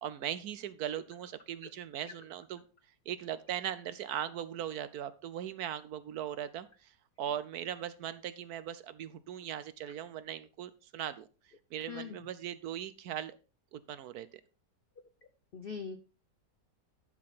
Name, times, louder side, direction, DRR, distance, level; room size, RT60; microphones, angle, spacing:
voice 1, 0.0-2.6 3.1-6.9 7.2-11.3 11.7-13.4 13.7-14.4, right 10 dB, 70° right, 14 dB, 1.0 m, -39 dB
voice 2, 15.5-16.0, left 6 dB, 85° left, 9 dB, 0.5 m, -40 dB
11.0 x 5.8 x 4.1 m, 0.34 s
omnidirectional pair, 1.9 m